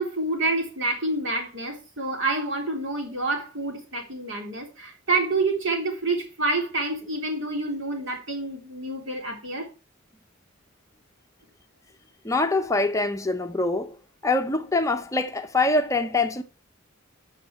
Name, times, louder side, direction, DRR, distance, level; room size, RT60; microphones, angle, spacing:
voice 1, 0.0-9.7, right 2 dB, 65° right, 3.6 m, -28 dB
voice 2, 12.2-14.0 14.2-16.4, left 2 dB, 15° left, 0.7 m, -24 dB
12.5 x 6.6 x 4.6 m
head